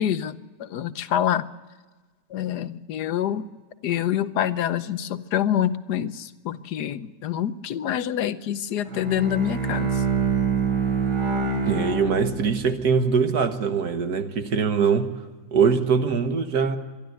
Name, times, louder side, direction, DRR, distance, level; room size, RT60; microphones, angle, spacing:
voice 1, 0.0-1.4 2.3-3.5 3.8-9.9, left 10 dB, 70° left, 1.3 m, -26 dB
Bowed string instrument, 8.8-12.9, right 5 dB, 80° right, 3.7 m, -25 dB
voice 2, 11.7-15.1 15.5-16.8, right 6 dB, 65° right, 1.8 m, -22 dB
24.0 x 12.0 x 9.5 m
omnidirectional pair, 1.9 m